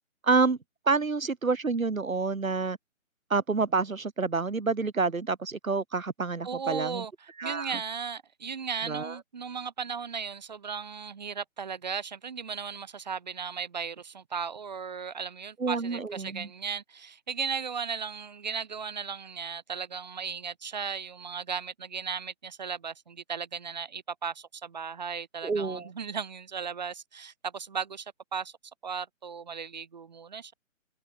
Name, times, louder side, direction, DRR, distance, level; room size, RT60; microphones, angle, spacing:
voice 1, 0.2-0.6 0.9-2.8 3.3-7.0 7.4-7.8 8.9-9.2 15.6-16.5 25.4-25.9, right 4 dB, 90° right, 5.6 m, -28 dB
voice 2, 6.4-28.5 28.8-30.5, right 6 dB, 35° right, 6.3 m, -36 dB
hypercardioid pair, 180°, 40 cm